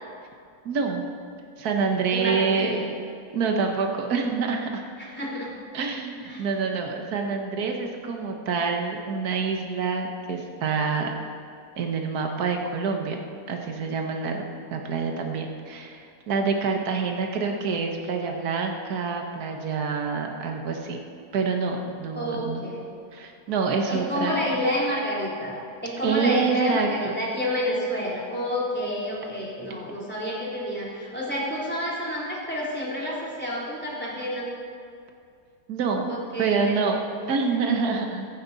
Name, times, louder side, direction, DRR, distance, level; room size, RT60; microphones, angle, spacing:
voice 1, 0.7-1.0 1.6-2.7 3.3-4.8 5.7-11.1 11.8-13.2 13.5-14.4 14.7-21.0 21.3-22.7 23.1-24.6 26.0-27.1 35.7-36.1 36.4-37.0 37.3-38.3, right 5 dB, 65° right, 2 dB, 1.7 m, -26 dB
voice 2, 2.1-2.8 5.0-5.5 6.2-6.5 22.1-22.9 23.9-34.5 36.1-37.0, equal, 5° left, -6 dB, 3.2 m, -29 dB
21.5 x 10.5 x 4.1 m, 2.3 s
omnidirectional pair, 1.8 m